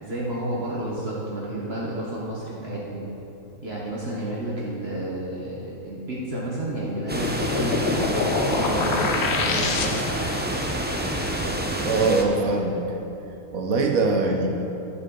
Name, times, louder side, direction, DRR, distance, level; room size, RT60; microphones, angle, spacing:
voice 1, 0.0-3.1 3.6-10.0, right 1 dB, 45° right, -5 dB, 1.3 m, -31 dB
sound 1, 6.8-10.4, left 4 dB, 60° left, 0.8 m, -27 dB
sound 2, 7.1-12.2, right 1 dB, 15° right, 0.4 m, -27 dB
voice 2, 11.8-12.8 13.5-14.5, right 3 dB, 70° right, 2 dB, 1.3 m, -22 dB
14.0 x 6.4 x 3.8 m, 3.0 s
omnidirectional pair, 1.5 m